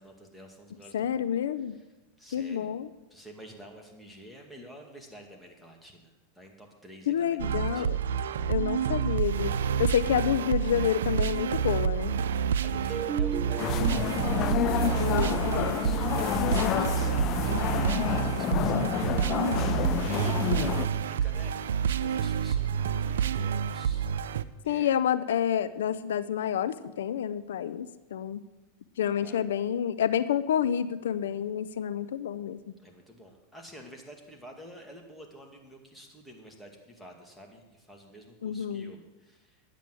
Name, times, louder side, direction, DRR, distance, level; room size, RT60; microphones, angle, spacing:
voice 1, 0.0-1.9 2.2-2.8 3.1-8.5 12.6-14.5 14.9-25.0 29.2-29.4 32.8-39.6, equal, ahead, 0 dB, 2.2 m, -50 dB
voice 2, 0.9-1.8 2.3-2.9 7.1-8.0 8.5-12.1 15.0-15.9 16.5-16.9 24.7-28.4 29.0-32.7 38.4-38.9, left 9 dB, 90° left, 15 dB, 0.5 m, -29 dB
sound 1, 7.4-24.4, right 8 dB, 90° right, 0.5 m, -28 dB
sound 2, 12.9-18.7, right 6 dB, 25° right, 0.7 m, -38 dB
sound 3, 13.6-20.9, left 12 dB, 40° left, 0.5 m, -29 dB
10.5 x 8.3 x 7.7 m, 1.1 s
supercardioid pair, 125°, 0 cm